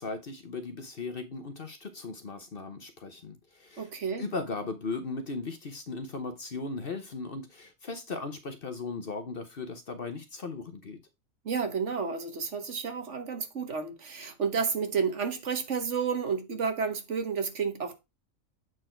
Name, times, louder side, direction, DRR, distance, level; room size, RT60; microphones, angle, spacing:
voice 1, 0.0-3.9 4.2-11.0, left 3 dB, 45° left, 1.0 m, -37 dB
voice 2, 3.8-4.2 11.4-18.0, right 6 dB, 55° right, 1.5 m, -31 dB
7.8 x 4.7 x 4.4 m
omnidirectional pair, 1.5 m